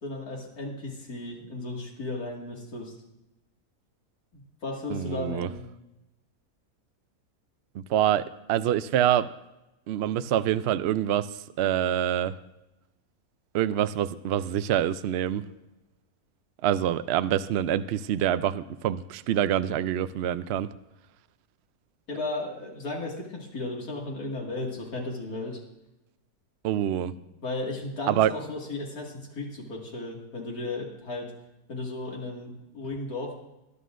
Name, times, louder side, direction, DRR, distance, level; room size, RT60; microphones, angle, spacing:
voice 1, 0.0-2.9 4.3-5.6 22.1-25.6 27.1-31.3 31.7-33.4, left 2 dB, 85° left, -2 dB, 2.7 m, -35 dB
voice 2, 4.9-5.5 7.7-9.3 9.9-11.3 11.6-12.3 13.5-15.4 16.6-20.7 26.6-27.1 28.1-28.3, right 11 dB, 65° right, 13 dB, 0.6 m, -26 dB
22.0 x 11.0 x 2.6 m, 0.95 s
omnidirectional pair, 1.5 m